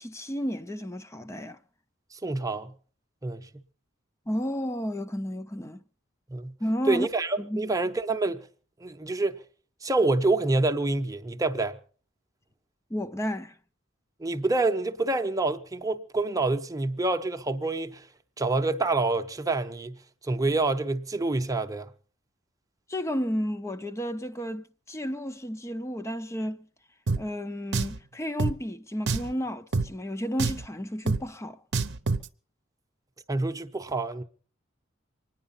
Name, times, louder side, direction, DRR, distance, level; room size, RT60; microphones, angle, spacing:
voice 1, 0.0-1.6 4.3-5.8 6.6-7.1 7.4-7.6 12.9-13.5 22.9-26.7 27.2-31.6, equal, 15° left, 0.7 m, -32 dB
voice 2, 2.1-2.7 3.2-3.5 6.3-6.6 6.9-8.5 8.8-9.4 9.8-11.8 14.2-18.1 18.4-21.9 33.3-34.2, right 2 dB, 15° right, 0.9 m, -27 dB
Drum, 27.1-27.2 27.7-28.0 28.4-28.5 29.1-29.3 29.7-29.9 30.4-30.7 31.1-31.2 31.7-32.3, right 3 dB, 60° right, 0.8 m, -26 dB
25.0 x 10.0 x 5.6 m
head